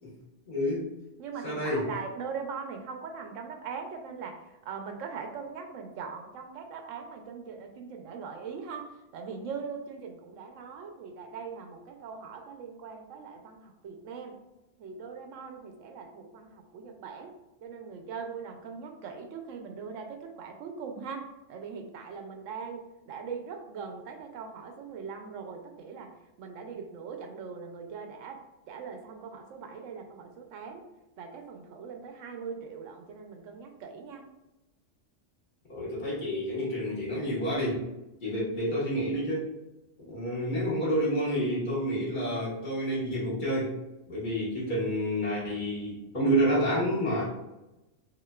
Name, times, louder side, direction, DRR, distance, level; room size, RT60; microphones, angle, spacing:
voice 1, 0.5-0.9 1.4-1.9 35.7-37.8 38.2-39.4 40.0-43.7 44.1-47.2, equal, 40° left, -7 dB, 1.5 m, -29 dB
voice 2, 1.2-14.4 14.8-17.3 17.6-30.9 31.2-34.2, right 5 dB, 80° right, 4 dB, 1.0 m, -41 dB
5.8 x 2.6 x 2.3 m, 0.99 s
omnidirectional pair, 1.3 m